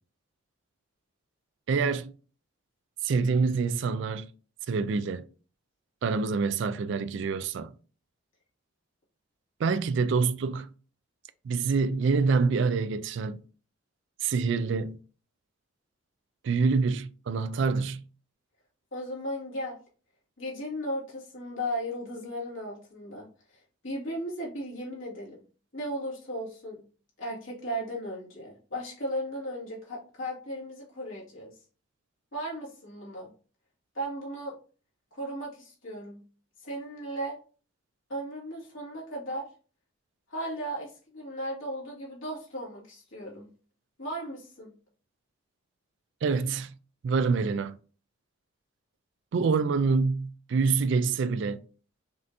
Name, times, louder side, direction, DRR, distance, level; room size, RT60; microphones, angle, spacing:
voice 1, 1.7-2.1 3.0-4.3 4.7-5.2 6.0-7.7 9.6-10.7 11.4-13.4 14.2-15.0 16.4-18.0 46.2-46.7 47.0-47.8 49.3-51.6, right 4 dB, 60° right, 0.3 m, -26 dB
voice 2, 18.9-19.8 20.4-23.3 23.5-25.4 25.7-26.8 27.2-31.5 32.3-33.3 33.9-34.5 35.1-36.2 36.6-37.4 38.1-39.5 40.3-43.5 44.0-44.7, equal, 70° left, 2.0 m, -36 dB
5.4 x 2.6 x 2.7 m
head